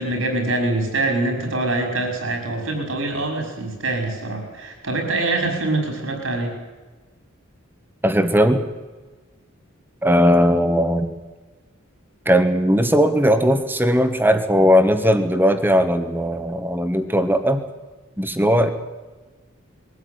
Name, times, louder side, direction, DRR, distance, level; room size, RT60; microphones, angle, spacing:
voice 1, 0.0-6.5, right 2 dB, 75° right, 3 dB, 5.7 m, -24 dB
voice 2, 8.0-8.6 10.0-11.1 12.2-17.6 18.2-18.7, equal, 10° right, 8 dB, 1.5 m, -18 dB
22.0 x 14.5 x 9.7 m, 1.3 s
head